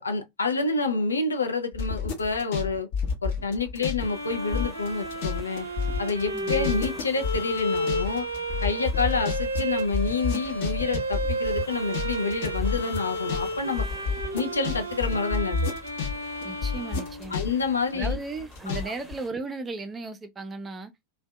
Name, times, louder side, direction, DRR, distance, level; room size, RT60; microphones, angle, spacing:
voice 1, 0.0-2.9 3.2-5.7 6.0-8.3 8.6-13.9 14.3-15.7 17.3-18.2 18.7-18.8, left 4 dB, 75° left, 0.5 m, -28 dB
sound 1, 1.7-4.1 4.3-16.1 16.4-18.8 19.1-19.2, left 5 dB, 50° left, 0.8 m, -29 dB
sound 2, 4.0-19.3, equal, 5° left, 0.9 m, -50 dB
Bowed string instrument, 4.0-17.9, right 1 dB, 85° right, 0.5 m, -32 dB
voice 2, 6.3-6.6 16.4-17.4 17.9-20.9, right 3 dB, 20° right, 0.5 m, -36 dB
2.6 x 2.1 x 2.2 m
figure-of-eight pair, 90°, 0 cm